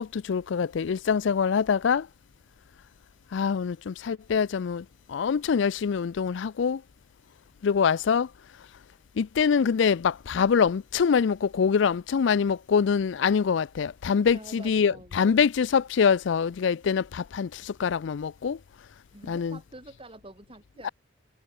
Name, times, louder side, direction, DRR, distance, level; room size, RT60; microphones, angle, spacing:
voice 1, 0.0-2.1 3.3-6.8 7.6-8.3 9.2-18.6 19.3-19.6 20.8-20.9, left 6 dB, 65° left, 0.4 m, -24 dB
voice 2, 14.3-15.4 19.1-20.9, right 1 dB, 25° right, 3.6 m, -47 dB
head